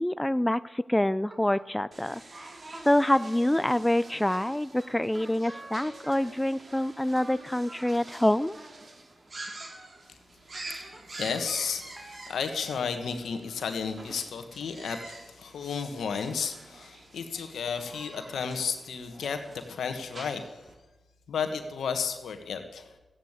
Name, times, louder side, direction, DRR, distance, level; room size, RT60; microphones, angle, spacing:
voice 1, 0.0-2.2 2.9-8.6, left 1 dB, 10° left, 16 dB, 0.4 m, -26 dB
sound 1, 1.2-1.9 2.7-4.5 5.1-9.8 10.5-12.8 15.0-15.1, right 1 dB, 25° right, 2.9 m, -50 dB
sound 2, 1.9-20.7, right 2 dB, 55° right, 2.8 m, -47 dB
voice 2, 11.1-20.5 21.3-22.9, left 6 dB, 85° left, 7 dB, 1.4 m, -33 dB
14.0 x 9.1 x 8.1 m, 1.1 s
cardioid pair, 50°, 0 cm